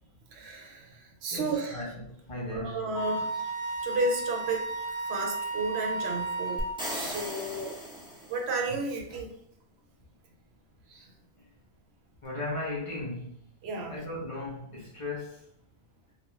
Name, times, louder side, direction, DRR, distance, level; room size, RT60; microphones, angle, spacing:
voice 1, 0.3-1.8 2.5-3.5 3.8-4.6 5.0-6.6 6.9-7.8 8.3-9.4 10.9-11.0 13.6-14.0, right 3 dB, 80° right, 2 dB, 0.8 m, -32 dB
voice 2, 1.3-3.0 12.2-13.4 13.9-15.5, left 2 dB, 35° left, -5 dB, 0.6 m, -37 dB
Wind instrument woodwind instrument, 2.9-6.8, right 3 dB, 60° left, 0.9 m, -33 dB
sound 1, 6.6-8.7, equal, 5° right, 0.5 m, -37 dB
2.3 x 2.2 x 3.0 m, 0.66 s
omnidirectional pair, 1.1 m